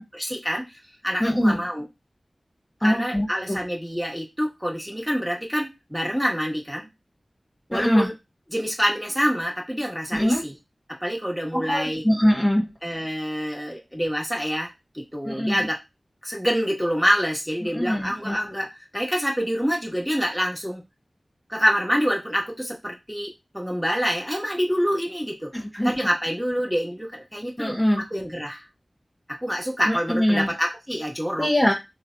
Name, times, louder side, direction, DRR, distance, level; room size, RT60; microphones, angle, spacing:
voice 1, 0.1-0.6 1.0-1.8 2.8-6.9 7.7-8.1 8.5-10.5 10.9-12.0 12.8-15.8 16.2-20.8 21.5-25.5 25.8-28.6 29.4-31.5, equal, 5° right, -1 dB, 1.3 m, -26 dB
voice 2, 1.2-1.6 2.8-3.6 7.7-8.1 10.1-10.4 11.5-12.6 15.2-15.7 17.7-18.4 25.5-25.9 27.6-28.0 29.9-30.5 31.4-31.7, equal, 30° left, -2 dB, 1.0 m, -22 dB
3.2 x 2.3 x 3.8 m, 0.21 s
wide cardioid pair, 45°, 0 cm